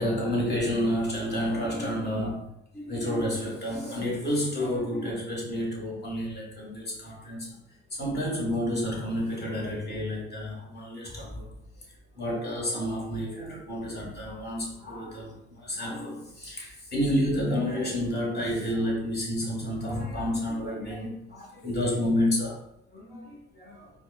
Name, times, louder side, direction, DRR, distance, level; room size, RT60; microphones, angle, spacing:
voice 1, 0.0-7.6 7.9-11.5 12.1-22.6 22.9-23.9, equal, 35° left, -3 dB, 1.4 m, -30 dB
4.3 x 2.2 x 2.3 m, 0.78 s
supercardioid pair, 80°, 29 cm